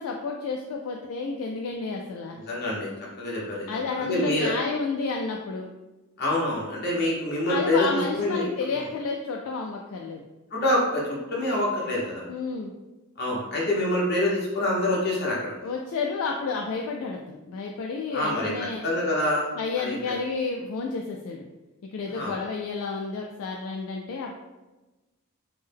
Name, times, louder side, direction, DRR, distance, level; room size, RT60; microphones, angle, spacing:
voice 1, 0.0-2.4 3.7-5.7 7.5-10.3 12.3-12.7 15.6-18.8 19.5-21.4 21.9-24.3, left 4 dB, 70° left, 1 dB, 0.3 m, -31 dB
voice 2, 2.5-2.9 3.2-4.5 6.2-8.4 10.5-12.2 13.2-15.5 18.1-18.5 18.8-19.5 19.8-20.2 22.1-22.3, left 1 dB, 50° left, -5 dB, 1.0 m, -26 dB
3.5 x 2.1 x 3.4 m, 1.1 s
head